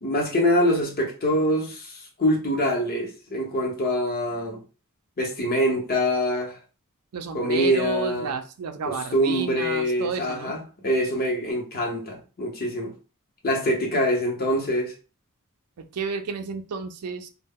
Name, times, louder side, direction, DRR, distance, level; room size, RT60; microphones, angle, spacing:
voice 1, 0.0-4.6 5.2-6.6 7.3-8.3 8.9-12.9 13.4-14.9, equal, 45° left, 0.8 m, -24 dB
voice 2, 7.1-10.6 15.8-17.3, right 5 dB, 85° right, 0.4 m, -31 dB
2.1 x 2.1 x 3.5 m
head